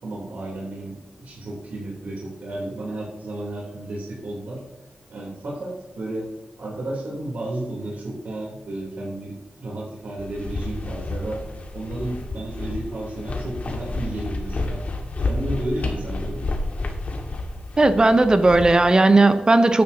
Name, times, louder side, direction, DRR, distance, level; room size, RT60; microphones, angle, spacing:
voice 1, 0.0-4.6 5.1-6.3 6.6-11.4 11.7-14.8 15.2-16.5, right 1 dB, 85° right, -5 dB, 3.5 m, -32 dB
sound 1, 10.2-18.7, left 2 dB, 60° left, 1.9 m, -30 dB
voice 2, 17.8-19.8, right 2 dB, 30° right, 9 dB, 0.8 m, -16 dB
14.0 x 10.5 x 2.9 m, 1.1 s
wide cardioid pair, 95°, 3 cm